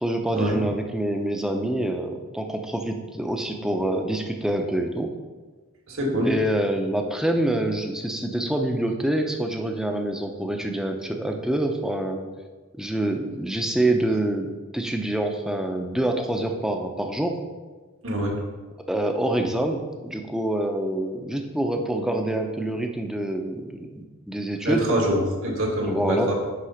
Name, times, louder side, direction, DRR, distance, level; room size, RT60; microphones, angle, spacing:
voice 1, 0.0-5.1 6.2-12.2 12.8-17.4 18.9-24.8 25.9-26.3, right 1 dB, 5° right, 3 dB, 0.6 m, -26 dB
voice 2, 5.9-6.3 18.0-18.4 24.6-26.3, equal, 70° right, 0 dB, 1.9 m, -24 dB
9.9 x 3.7 x 5.8 m, 1.3 s
head